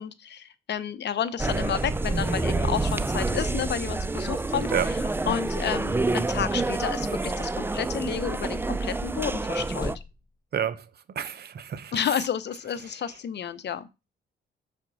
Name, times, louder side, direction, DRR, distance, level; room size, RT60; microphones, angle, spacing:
voice 1, 0.0-9.9 11.9-13.9, left 9 dB, 60° left, 0.8 m, -31 dB
sound 1, 1.4-10.0, right 2 dB, 10° right, 0.4 m, -28 dB
sound 2, 2.9-4.2 5.5-6.6 8.4-9.5 9.8-10.5 12.8-13.2, left 3 dB, 20° left, 1.3 m, -46 dB
voice 2, 11.2-12.0, right 9 dB, 55° right, 0.7 m, -29 dB
5.8 x 4.3 x 6.1 m
cardioid pair, 90°, 20 cm